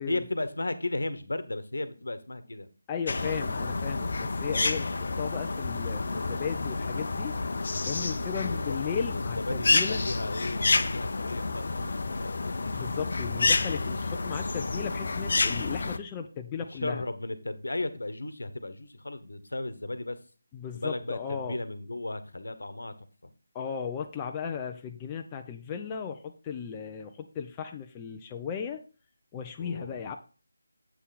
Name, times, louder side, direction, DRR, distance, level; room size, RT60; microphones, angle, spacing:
voice 1, 0.1-2.7 8.3-8.8 9.1-12.6 16.7-20.2 20.7-22.9 23.2-23.3 29.6-30.1, left 2 dB, 75° left, 12 dB, 1.2 m, -35 dB
voice 2, 2.9-7.3 7.9-10.0 12.7-17.0 20.5-21.6 23.5-28.8 29.3-30.1, left 7 dB, 15° left, 3 dB, 0.6 m, -36 dB
sound 1, 3.1-16.0, left 3 dB, 55° left, 0.7 m, -29 dB
8.1 x 5.5 x 4.2 m, 0.35 s
figure-of-eight pair, 160°, 0 cm